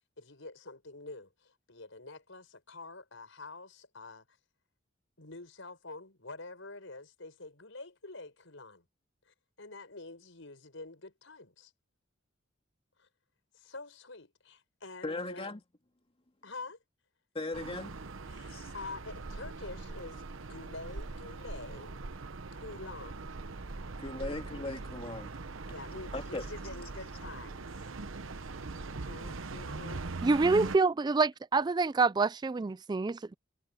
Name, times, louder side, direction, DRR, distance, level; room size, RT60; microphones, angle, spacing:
voice 1, 0.2-4.2 5.2-8.8 9.3-11.7 13.0-13.1 13.5-15.5 16.4-16.8 18.3-22.0 22.6-23.4 24.2-24.4 25.7-27.7 29.1-30.1 31.6-31.7, left 3 dB, 70° left, 6.7 m, -47 dB
voice 2, 15.0-15.6 17.3-17.9 18.5-18.7 24.0-25.3 26.1-26.5, left 2 dB, 30° left, 2.0 m, -38 dB
sound 1, 17.5-30.8, right 3 dB, 75° right, 0.9 m, -41 dB
voice 3, 30.2-33.3, right 4 dB, 20° right, 0.3 m, -27 dB
head